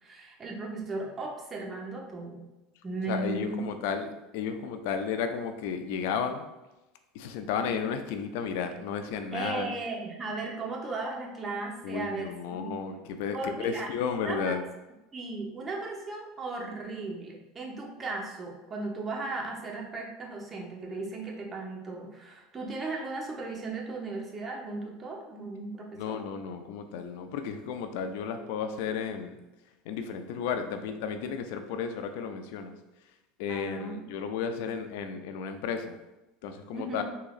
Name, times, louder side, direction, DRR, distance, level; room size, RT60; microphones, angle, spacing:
voice 1, 0.0-2.5 2.8-3.6 9.3-12.7 13.3-13.9 14.2-14.6 15.1-26.2 33.5-34.0 34.4-34.6 36.7-37.0, right 3 dB, 25° right, -2 dB, 0.9 m, -36 dB
voice 2, 3.1-6.4 7.1-9.7 11.8-14.6 26.0-29.4 29.9-32.7 33.4-36.0 36.4-37.0, left 6 dB, 75° left, 7 dB, 0.3 m, -33 dB
3.8 x 2.8 x 2.4 m, 1.0 s
supercardioid pair, 100°, 0 cm